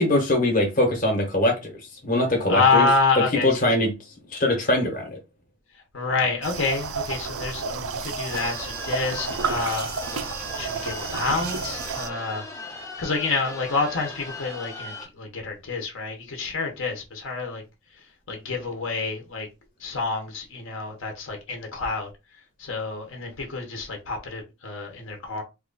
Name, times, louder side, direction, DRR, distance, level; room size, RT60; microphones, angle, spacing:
voice 1, 0.0-1.7 2.0-2.9 3.4-3.9 4.3-5.2, left 1 dB, 40° left, 1.0 m, -22 dB
voice 2, 2.5-3.6 5.9-10.3 10.6-12.5 13.0-17.6 18.3-19.5 19.8-22.1 22.6-25.4, left 4 dB, 65° left, 0.9 m, -27 dB
sound 1, 6.4-12.1, right 5 dB, 80° right, 0.5 m, -31 dB
sound 2, 8.3-15.0, left 2 dB, 15° left, 0.6 m, -38 dB
3.0 x 2.4 x 3.8 m
head